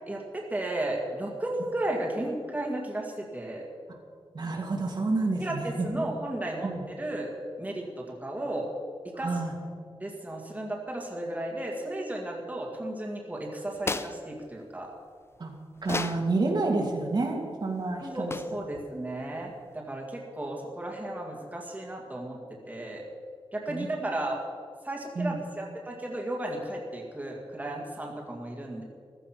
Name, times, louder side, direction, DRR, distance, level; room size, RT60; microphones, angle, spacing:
voice 1, 0.1-3.7 5.4-7.3 7.6-8.7 9.2-9.3 10.0-14.9 18.0-22.4 22.7-23.0 23.5-24.4 24.8-28.8, right 1 dB, 15° right, -1 dB, 2.0 m, -34 dB
voice 2, 4.3-6.0 6.6-6.8 9.2-9.5 15.4-15.5 15.8-18.4 23.7-23.9 25.2-25.4, right 3 dB, 50° right, 0 dB, 2.4 m, -29 dB
sound 1, 13.7-14.2 15.8-16.3 18.3-18.6, left 3 dB, 25° left, 0.5 m, -32 dB
15.5 x 13.5 x 5.9 m, 2.1 s
wide cardioid pair, 150°, 10 cm